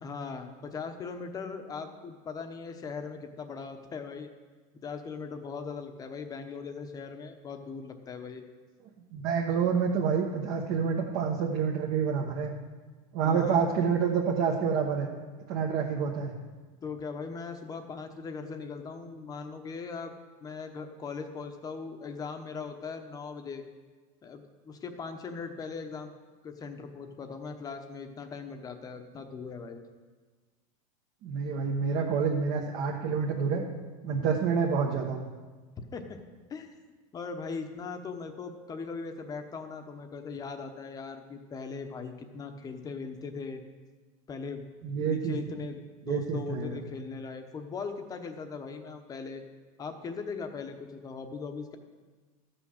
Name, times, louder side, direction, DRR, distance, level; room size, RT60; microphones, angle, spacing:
voice 1, 0.0-4.3 4.8-8.4 13.2-13.6 16.8-20.1 20.4-23.6 24.2-26.1 26.4-29.8 35.9-36.2 36.5-36.7 37.1-43.6 44.3-44.6 45.0-49.4 49.8-51.8, left 5 dB, 20° left, 6 dB, 0.9 m, -39 dB
voice 2, 9.1-12.5 13.1-15.1 15.5-16.4 31.2-33.6 34.0-35.3 44.8-45.4 46.0-46.8, right 6 dB, 50° right, 0 dB, 1.2 m, -28 dB
13.5 x 6.1 x 6.5 m, 1.4 s
supercardioid pair, 150°, 18 cm